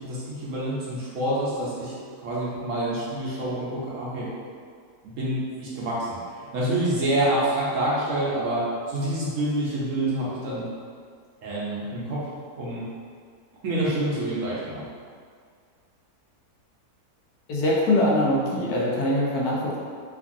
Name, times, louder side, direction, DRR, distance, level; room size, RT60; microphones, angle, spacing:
voice 1, 0.0-2.0 2.2-4.3 5.0-10.7 11.4-12.2 12.6-12.9 13.6-14.8, right 1 dB, 65° right, -7 dB, 0.9 m, -27 dB
voice 2, 17.5-19.8, left 1 dB, 80° left, -4 dB, 1.1 m, -23 dB
3.0 x 2.5 x 2.5 m, 2.1 s
omnidirectional pair, 1.6 m